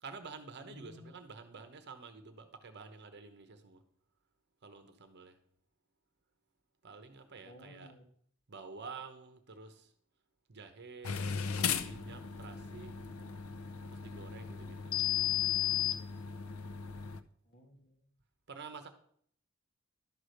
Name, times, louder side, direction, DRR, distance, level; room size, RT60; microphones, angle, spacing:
voice 1, 0.0-3.8 4.6-5.4 6.8-7.9 8.5-9.9 10.5-12.9 13.9-14.9 18.5-18.9, right 4 dB, 55° right, 8 dB, 0.9 m, -50 dB
voice 2, 0.6-1.1 7.4-8.0 17.5-18.0, left 1 dB, 50° left, 3 dB, 1.6 m, -55 dB
sound 1, 11.0-17.2, left 9 dB, 85° left, 0.6 m, -35 dB
11.5 x 4.9 x 6.4 m, 0.63 s
head